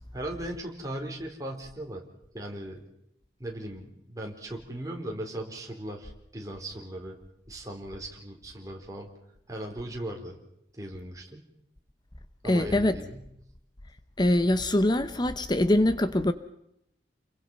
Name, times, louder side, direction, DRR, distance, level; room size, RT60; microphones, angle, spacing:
voice 1, 0.1-2.0 2.3-2.8 3.4-7.2 7.5-9.1 9.5-10.4 10.7-11.4 12.4-13.3, right 1 dB, 20° right, 4.1 m, -38 dB
voice 2, 12.4-13.0 14.2-16.3, left 1 dB, 25° left, 0.9 m, -23 dB
29.0 x 22.5 x 5.6 m
head